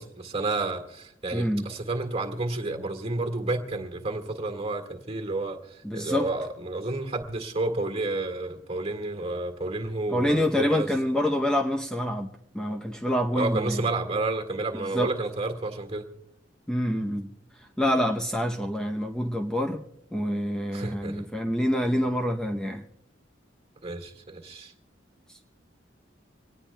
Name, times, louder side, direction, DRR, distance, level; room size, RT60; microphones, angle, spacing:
voice 1, 0.0-10.9 13.3-16.1 20.7-21.3 23.8-24.7, right 2 dB, 35° right, 6 dB, 1.8 m, -30 dB
voice 2, 1.3-1.6 5.8-6.3 10.1-13.8 14.7-15.1 16.7-17.3 17.8-19.8 20.1-22.8, equal, 5° left, 2 dB, 0.7 m, -26 dB
25.5 x 19.0 x 2.2 m, 0.79 s
head